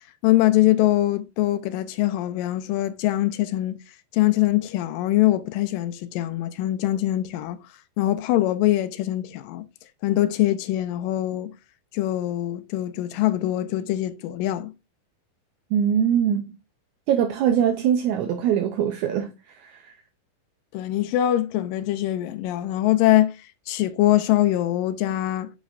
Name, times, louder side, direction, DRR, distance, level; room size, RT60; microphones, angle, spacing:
voice 1, 0.2-3.8 4.1-7.6 8.0-9.7 10.0-11.5 11.9-14.7 20.7-23.4 23.7-25.5, left 14 dB, 85° left, 2.3 m, -23 dB
voice 2, 15.7-16.6 17.1-19.9, right 9 dB, 80° right, 1.8 m, -23 dB
7.9 x 5.2 x 2.5 m
omnidirectional pair, 3.9 m